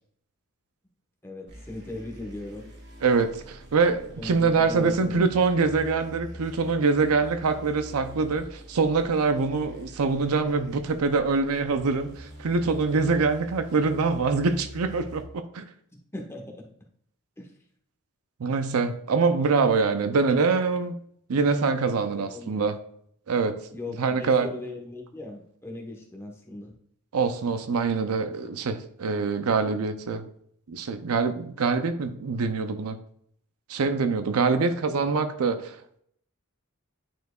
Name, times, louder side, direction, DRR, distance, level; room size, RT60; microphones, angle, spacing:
voice 1, 1.2-2.7 4.2-5.3 16.1-16.7 17.4-17.5 22.1-22.8 23.7-26.7 34.4-34.6, left 2 dB, 10° left, 0 dB, 1.1 m, -38 dB
sound 1, 1.5-15.2, equal, 55° right, 1.5 m, -45 dB
voice 2, 3.0-15.7 18.4-21.0 21.3-22.7 23.3-23.6 24.0-24.5 27.1-30.3 30.7-33.0 33.7-35.8, right 4 dB, 80° right, 9 dB, 0.5 m, -24 dB
9.3 x 4.4 x 2.3 m, 0.67 s
head